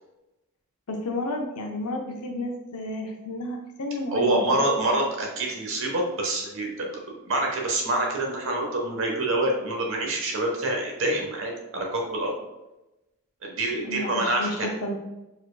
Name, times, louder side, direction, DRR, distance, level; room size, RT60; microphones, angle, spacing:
voice 1, 0.9-4.5 13.8-15.0, left 2 dB, 90° left, 2 dB, 0.6 m, -32 dB
voice 2, 4.1-12.3 13.4-14.7, right 1 dB, 60° right, 0 dB, 1.1 m, -26 dB
4.9 x 4.3 x 2.2 m, 0.99 s
head